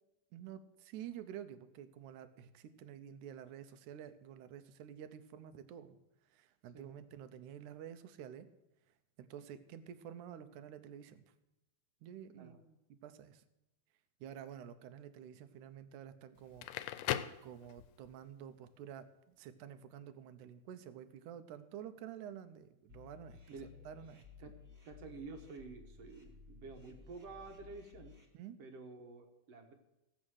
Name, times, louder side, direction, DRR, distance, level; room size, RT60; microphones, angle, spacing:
voice 1, 0.3-6.0 6.3-8.5 9.2-11.3 12.0-13.4 14.2-16.7 17.4-23.4 23.9-24.2 28.3-28.6, right 9 dB, 75° right, 11 dB, 2.2 m, -50 dB
Crackle, 16.4-18.1, left 13 dB, 90° left, 2.2 m, -39 dB
sound 1, 22.9-28.2, left 5 dB, 25° right, 1.8 m, -57 dB
voice 2, 24.9-28.2 28.6-29.7, right 4 dB, 60° right, 4 dB, 2.0 m, -50 dB
16.5 x 7.6 x 6.3 m, 0.92 s
omnidirectional pair, 3.7 m